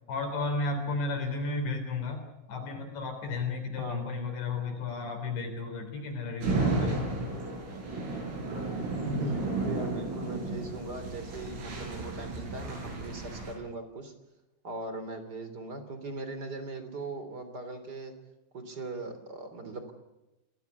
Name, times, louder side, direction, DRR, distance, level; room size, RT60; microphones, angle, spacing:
voice 1, 0.1-7.0, left 3 dB, 65° left, 5 dB, 5.7 m, -33 dB
voice 2, 3.8-4.1 8.3-8.4 9.0-14.1 14.6-18.1 18.5-19.9, right 2 dB, 25° right, 9 dB, 2.9 m, -39 dB
sound 1, 6.4-13.5, right 3 dB, 80° right, 10.5 m, -33 dB
27.5 x 19.5 x 8.3 m, 0.99 s
omnidirectional pair, 5.8 m